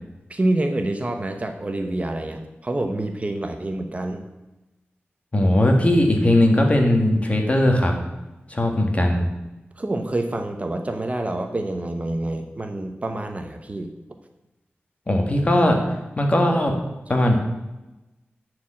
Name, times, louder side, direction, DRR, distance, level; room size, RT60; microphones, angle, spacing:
voice 1, 0.3-4.2 9.8-13.9, right 1 dB, 35° right, 5 dB, 1.0 m, -27 dB
voice 2, 5.3-7.9 8.5-9.3 15.1-15.8 16.2-16.7 17.1-17.4, left 1 dB, 30° left, 2 dB, 1.8 m, -18 dB
11.0 x 4.9 x 7.6 m, 1.0 s
wide cardioid pair, 100°, 4 cm